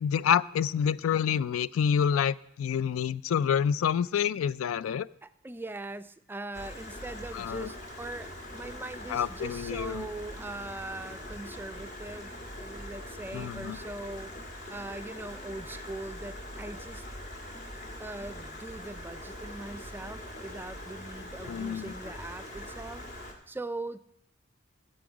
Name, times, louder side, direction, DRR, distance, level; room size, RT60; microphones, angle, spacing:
voice 1, 0.0-5.1 7.3-7.7 9.1-10.0 13.3-13.8 21.5-21.9, left 8 dB, 90° left, 19 dB, 0.3 m, -28 dB
voice 2, 5.2-14.3 14.7-17.0 18.0-23.0 23.5-24.0, right 2 dB, 10° right, 12 dB, 0.3 m, -41 dB
Stream, 6.5-23.3, left 1 dB, 55° left, 2.0 m, -42 dB
14.0 x 7.8 x 5.0 m, 0.77 s
head